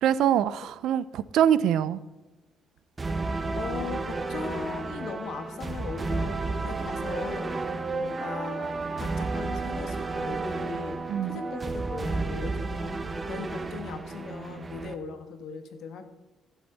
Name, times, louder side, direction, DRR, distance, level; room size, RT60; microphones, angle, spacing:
voice 1, 0.0-2.0 11.1-11.4, right 10 dB, 80° right, 17 dB, 0.5 m, -24 dB
sound 1, 3.0-14.9, right 3 dB, 25° right, 0.8 m, -32 dB
voice 2, 3.5-6.3 6.6-7.5 8.0-11.0 11.2-16.0, left 5 dB, 70° left, 8 dB, 1.4 m, -39 dB
15.0 x 7.2 x 4.0 m, 1.2 s
cardioid pair, 120°, 0 cm